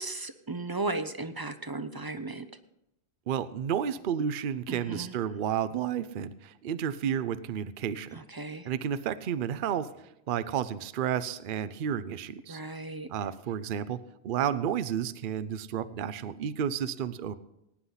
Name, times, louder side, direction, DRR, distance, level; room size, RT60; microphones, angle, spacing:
voice 1, 0.0-2.5 4.7-5.1 8.1-8.7 12.5-13.1, right 2 dB, 25° right, 10 dB, 0.5 m, -35 dB
voice 2, 3.3-8.2 8.6-12.6 13.1-14.0 14.2-17.3, right 8 dB, 55° right, 14 dB, 0.7 m, -31 dB
17.5 x 9.8 x 4.0 m, 0.84 s
omnidirectional pair, 1.1 m